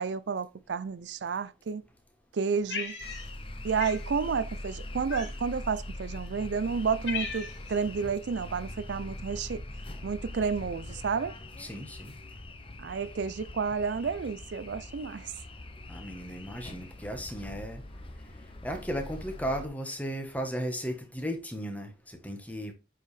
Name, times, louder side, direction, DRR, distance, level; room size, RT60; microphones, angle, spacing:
voice 1, 0.0-1.8 2.3-2.9 3.6-9.6 10.0-11.3 12.8-15.3, right 5 dB, 70° right, 0.4 m, -31 dB
Cat, 2.7-3.5 3.8-4.0 5.1-5.6 6.3-6.4 6.7-7.8, left 5 dB, 75° left, 2.3 m, -36 dB
sound 1, 3.0-19.7, left 1 dB, 30° left, 0.8 m, -42 dB
voice 2, 11.6-12.1 15.9-17.8 18.6-22.7, equal, 10° left, 1.2 m, -35 dB
8.1 x 4.7 x 3.2 m
head